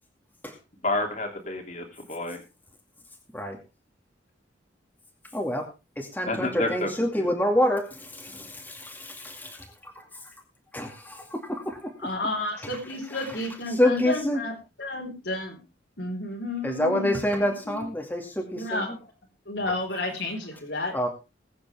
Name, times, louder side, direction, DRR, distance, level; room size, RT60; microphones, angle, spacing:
voice 1, 0.8-2.4 6.3-6.9 7.2-7.3, left 2 dB, 40° left, 4 dB, 3.0 m, -29 dB
voice 2, 5.3-5.7 6.0-9.6 9.8-9.9 10.7-11.8 13.1-13.3 13.7-14.4 16.6-18.8 19.6-19.7 20.9-21.1, left 1 dB, 10° left, 2 dB, 2.3 m, -27 dB
voice 3, 12.0-15.6 16.0-17.8 18.6-19.0 19.5-21.0, left 2 dB, 70° left, 1 dB, 4.1 m, -32 dB
20.5 x 8.7 x 3.5 m, 0.29 s
head